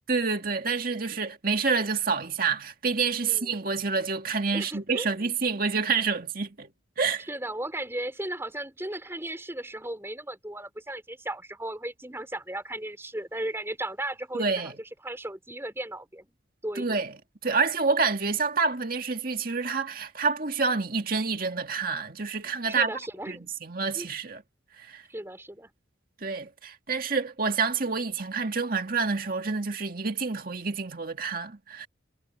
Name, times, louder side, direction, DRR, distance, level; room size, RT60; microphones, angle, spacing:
voice 1, 0.1-6.7 7.0-7.3 14.3-14.7 16.8-17.1 17.4-22.9 23.3-24.4 24.8-25.0 26.2-31.9, right 4 dB, 45° right, 2.0 m, -28 dB
voice 2, 3.2-3.5 4.5-5.1 7.3-16.3 16.6-17.0 22.7-23.5 23.9-24.1 25.1-25.7, right 1 dB, 10° right, 4.1 m, -36 dB
head